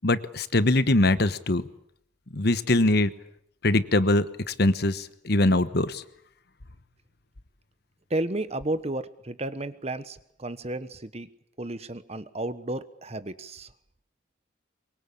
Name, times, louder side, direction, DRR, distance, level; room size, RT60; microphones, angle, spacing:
voice 1, 0.0-1.6 2.3-3.1 3.6-6.0, left 2 dB, 50° left, 13 dB, 1.2 m, -22 dB
voice 2, 8.1-11.3 11.6-13.7, right 2 dB, 30° right, 14 dB, 1.1 m, -32 dB
23.5 x 23.5 x 8.6 m, 0.70 s
head